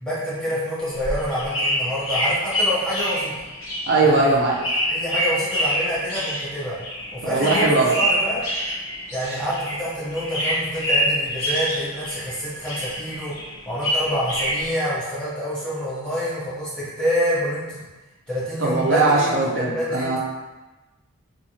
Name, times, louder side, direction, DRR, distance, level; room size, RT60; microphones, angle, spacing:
voice 1, 0.0-3.3 4.0-4.4 4.9-6.8 7.1-8.4 9.1-13.3 13.7-17.8 18.3-20.1, equal, 5° left, -9 dB, 0.7 m, -27 dB
sound 1, 0.8-9.9 10.1-12.4 12.6-14.7, equal, 80° left, 1.1 m, -25 dB
voice 2, 3.9-4.6 7.3-7.9 18.6-20.2, right 3 dB, 60° right, -3 dB, 0.4 m, -19 dB
3.0 x 2.4 x 2.6 m, 1.2 s
head